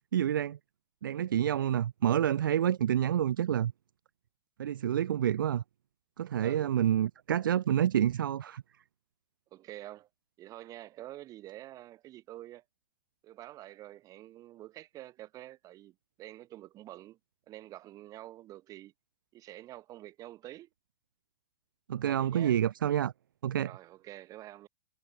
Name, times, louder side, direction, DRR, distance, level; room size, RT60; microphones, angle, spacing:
voice 1, 0.1-0.6 1.0-3.7 4.6-5.6 6.2-8.6 21.9-23.1 23.4-23.7, right 10 dB, 70° right, 0.4 m, -28 dB
voice 2, 6.4-6.8 9.5-10.1 10.4-12.6 13.2-17.2 17.5-18.9 19.3-20.7 22.0-22.6 23.6-24.7, right 14 dB, 30° right, 2.5 m, -47 dB
hypercardioid pair, 110°, 11 cm